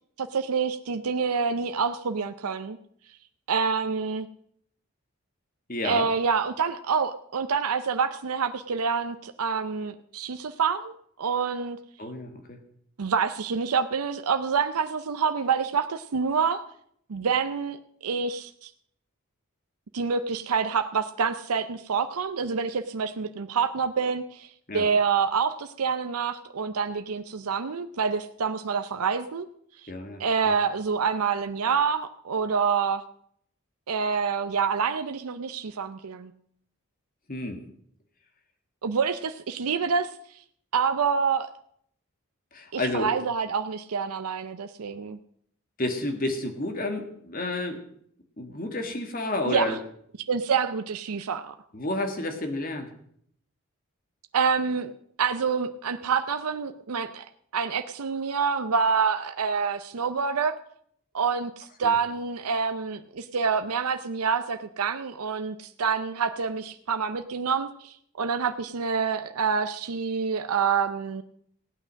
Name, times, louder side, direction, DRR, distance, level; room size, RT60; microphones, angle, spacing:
voice 1, 0.2-2.8 3.5-4.3 5.8-11.8 13.0-16.6 17.1-17.8 18.0-18.7 19.9-29.5 29.8-29.9 30.2-33.0 33.9-36.3 38.8-40.1 40.7-41.5 42.7-45.2 49.5-49.8 50.3-51.5 54.3-54.9 55.2-57.2 57.5-60.5 61.1-71.2, right 5 dB, 85° right, 9 dB, 0.6 m, -27 dB
voice 2, 5.7-6.1 12.0-12.6 24.7-24.9 29.9-30.5 37.3-37.6 42.5-43.1 45.8-47.8 48.4-49.8 51.7-52.9 61.8-62.0, left 1 dB, 40° left, 6 dB, 1.7 m, -30 dB
16.0 x 9.0 x 6.3 m, 0.67 s
head